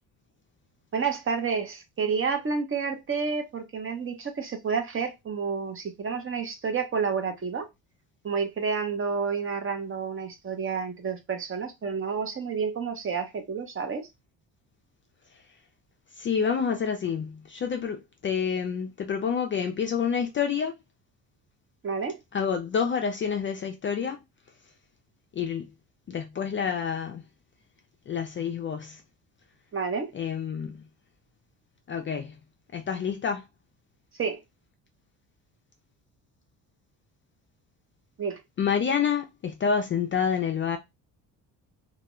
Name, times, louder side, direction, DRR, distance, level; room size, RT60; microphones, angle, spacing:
voice 1, 0.9-7.7 8.2-14.0 21.8-22.2 29.7-30.1 34.2-34.4 38.2-38.4, right 5 dB, 30° right, 0.7 m, -30 dB
voice 2, 16.2-20.7 22.3-24.2 25.3-25.7 26.1-27.2 28.1-29.0 30.1-30.9 31.9-32.4 32.7-33.4 38.6-40.8, left 7 dB, 30° left, 0.4 m, -28 dB
2.3 x 2.1 x 2.9 m
supercardioid pair, 85°, 41 cm